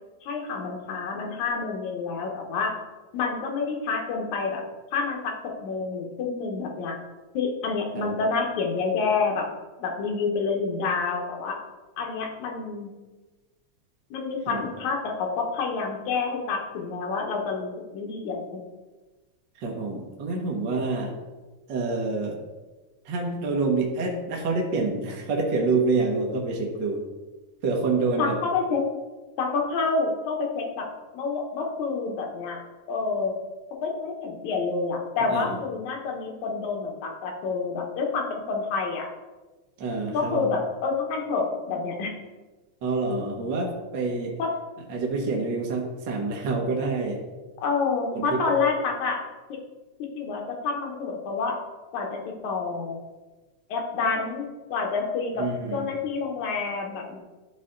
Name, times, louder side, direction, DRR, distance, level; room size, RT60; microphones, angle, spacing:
voice 1, 0.2-2.7 3.1-4.6 4.9-6.9 7.3-9.5 9.8-11.6 12.0-12.9 14.1-18.6 28.2-28.8 29.4-30.9 31.1-32.6 32.9-33.3 33.8-39.1 40.1-42.1 44.4-44.5 47.6-49.2 50.2-51.6 51.9-53.0 53.7-55.5 55.7-57.2, left 4 dB, 80° left, 1 dB, 2.5 m, -28 dB
voice 2, 19.5-21.1 21.7-22.4 23.0-27.0 27.6-28.4 35.3-35.6 39.8-40.5 42.8-44.3 44.9-47.2 48.1-48.5 55.4-55.9, right 3 dB, 55° right, -1 dB, 1.2 m, -27 dB
12.5 x 4.1 x 3.8 m, 1.2 s
omnidirectional pair, 3.3 m